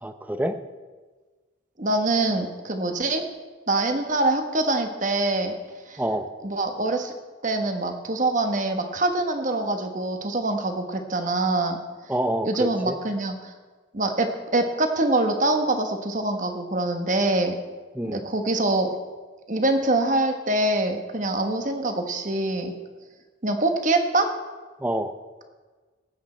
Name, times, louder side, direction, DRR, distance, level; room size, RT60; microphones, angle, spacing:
voice 1, 0.0-0.5 6.0-6.3 12.1-13.0 17.9-18.2 24.8-25.1, right 1 dB, 10° right, 9 dB, 0.6 m, -27 dB
voice 2, 1.8-3.2 3.7-5.5 5.9-6.0 6.4-7.1 7.4-11.8 12.4-13.5 13.9-17.6 18.0-18.9 19.5-22.7 23.4-24.3, right 2 dB, 40° right, 6 dB, 1.2 m, -24 dB
18.5 x 8.7 x 4.4 m, 1.4 s
head